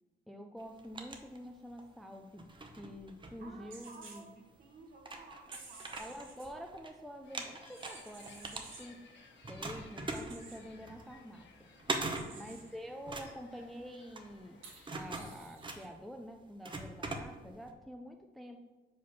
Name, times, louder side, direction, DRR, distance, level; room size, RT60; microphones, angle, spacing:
voice 1, 0.3-4.3 6.0-9.1 9.5-11.7 12.3-14.6 14.9-18.6, equal, ahead, 4 dB, 0.4 m, -47 dB
sound 1, 0.6-1.9 2.3-4.0 4.6-4.7 5.0-6.9 7.2-9.1 9.4-17.7, right 2 dB, 25° right, 0.8 m, -42 dB
voice 2, 3.4-6.2 12.0-12.5, right 3 dB, 50° right, 1 dB, 1.5 m, -55 dB
sound 2, 3.7-4.2 5.5-6.5 7.6-8.9 10.1-10.6 12.1-12.7 14.6-15.9, right 4 dB, 80° right, 1.4 m, -53 dB
sound 3, 7.2-15.4, left 4 dB, 65° left, 1.0 m, -59 dB
5.0 x 4.2 x 5.7 m, 1.2 s
cardioid pair, 90°, 20 cm